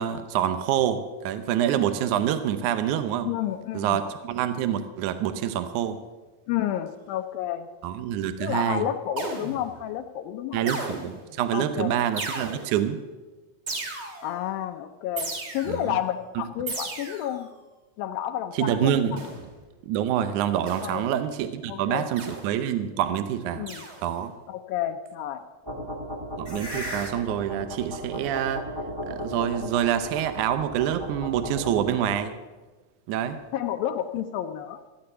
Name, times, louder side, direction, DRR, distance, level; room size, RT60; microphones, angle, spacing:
voice 1, 0.0-3.3 3.7-6.0 7.8-8.9 10.5-13.0 15.7-16.0 18.5-19.2 19.9-23.7 24.0-24.3 26.4-28.7 29.1-32.3 33.1-33.4, right 10 dB, 75° right, 10 dB, 1.9 m, -26 dB
voice 2, 3.2-4.0 6.5-7.7 8.4-10.6 11.5-12.0 14.2-17.5 18.0-19.0 20.8-21.1 21.7-22.1 23.6-23.9 24.5-25.4 33.5-34.8, left 11 dB, 80° left, 7 dB, 2.3 m, -30 dB
sound 1, 9.2-9.8 10.7-11.3 12.2-12.9 13.7-14.4 15.2-15.9 16.7-17.4 19.2-19.6 20.7-21.1 22.2-22.6 23.7-24.2, right 2 dB, 35° right, 2.3 m, -35 dB
sound 2, 25.7-32.2, equal, 15° right, 0.8 m, -35 dB
15.5 x 9.4 x 6.8 m, 1.2 s
omnidirectional pair, 4.2 m